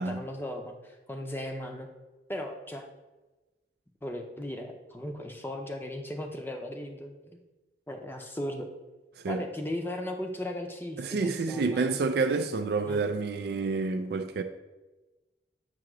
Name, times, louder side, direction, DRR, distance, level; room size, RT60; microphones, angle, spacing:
voice 1, 0.0-1.9 2.3-2.9 4.0-7.4 7.9-8.7 9.3-12.0 12.9-13.0, left 1 dB, 10° left, 0.6 m, -37 dB
voice 2, 11.0-14.4, right 4 dB, 60° right, 0.3 m, -29 dB
7.5 x 2.9 x 6.0 m
head